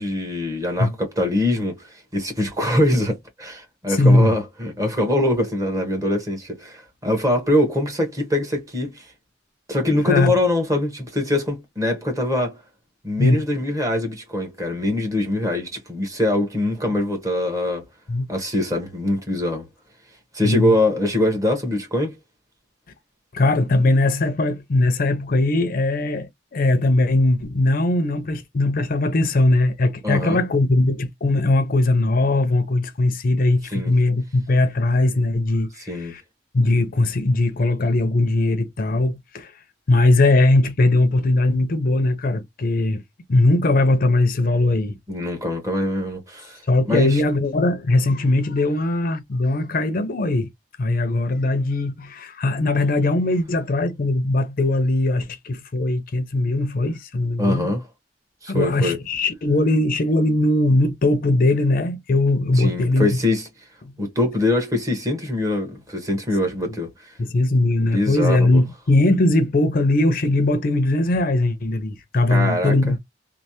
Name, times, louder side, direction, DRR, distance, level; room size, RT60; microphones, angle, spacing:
voice 1, 0.0-9.1 9.7-12.6 13.0-17.8 18.3-19.7 20.3-22.1 30.0-30.4 33.7-33.9 35.9-36.1 45.1-46.6 46.9-47.2 57.4-57.9 58.4-59.0 62.5-63.5 64.0-67.1 67.9-68.6 72.3-72.9, left 1 dB, 20° right, 1.1 m, -23 dB
voice 2, 3.9-4.4 10.1-10.3 13.2-13.4 18.1-18.3 20.4-20.8 23.3-36.2 36.5-39.5 39.9-43.0 43.3-45.0 46.7-50.5 50.8-57.7 58.5-63.2 67.2-73.0, left 2 dB, 55° left, 0.5 m, -20 dB
3.2 x 2.0 x 2.7 m
head